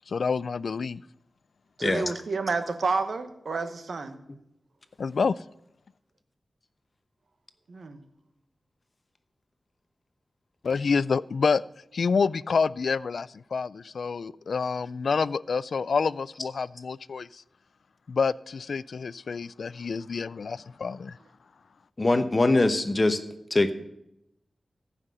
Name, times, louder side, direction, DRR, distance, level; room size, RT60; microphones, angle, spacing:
voice 1, 0.1-1.0 5.0-5.4 10.6-11.6 11.9-17.4 18.1-21.2, left 5 dB, 75° left, 20 dB, 0.3 m, -28 dB
voice 2, 1.8-4.2 7.7-8.0, right 4 dB, 70° right, 9 dB, 1.1 m, -30 dB
voice 3, 22.0-23.2 23.5-23.7, left 2 dB, 30° left, 10 dB, 0.9 m, -22 dB
14.5 x 5.8 x 6.7 m, 0.81 s
wide cardioid pair, 105°, 0 cm